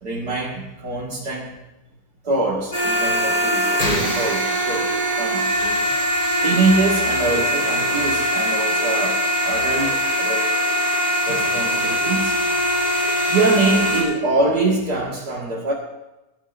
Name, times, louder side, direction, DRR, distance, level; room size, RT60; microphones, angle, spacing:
voice 1, 0.0-1.5 2.2-5.5 6.4-10.5 11.3-12.4 13.2-15.7, right 3 dB, 80° right, -6 dB, 2.6 m, -24 dB
sound 1, 2.7-14.0, equal, 30° left, 4.6 m, -21 dB
23.5 x 12.5 x 2.6 m, 1.0 s
omnidirectional pair, 1.7 m